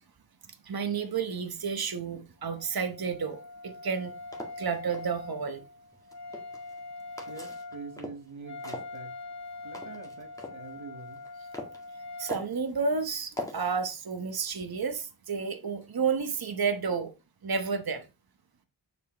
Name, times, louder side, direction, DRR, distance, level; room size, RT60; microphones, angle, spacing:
voice 1, 0.6-4.1 4.6-5.6 12.2-17.1 17.4-18.1, right 5 dB, 50° right, 1.2 m, -31 dB
Wind instrument woodwind instrument, 2.4-12.4, left 3 dB, 35° left, 1.0 m, -43 dB
sound 1, 4.0-5.1 5.9-6.8 7.2-8.3 8.6-10.6 11.1-11.8 12.3-12.6 13.4-13.8, left 1 dB, 5° left, 2.0 m, -41 dB
voice 2, 7.2-9.2 9.6-11.2, right 4 dB, 85° right, 1.5 m, -45 dB
7.4 x 7.0 x 3.0 m
wide cardioid pair, 90°, 46 cm